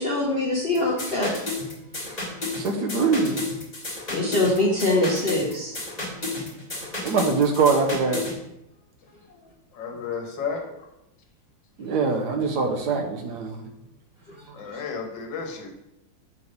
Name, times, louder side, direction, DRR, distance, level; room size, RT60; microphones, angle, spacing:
voice 1, 0.0-1.3 4.1-5.7, left 2 dB, 40° left, -5 dB, 1.0 m, -23 dB
sound 1, 0.7-8.4, left 2 dB, 25° left, 1.6 m, -32 dB
voice 2, 2.2-3.4 6.0-6.1 6.7-8.3 11.8-13.7 14.5-14.6, right 4 dB, 65° right, 3 dB, 1.2 m, -24 dB
voice 3, 9.7-10.9 14.5-15.7, left 5 dB, 70° left, 1 dB, 1.7 m, -33 dB
6.9 x 3.2 x 5.2 m, 0.87 s
omnidirectional pair, 2.2 m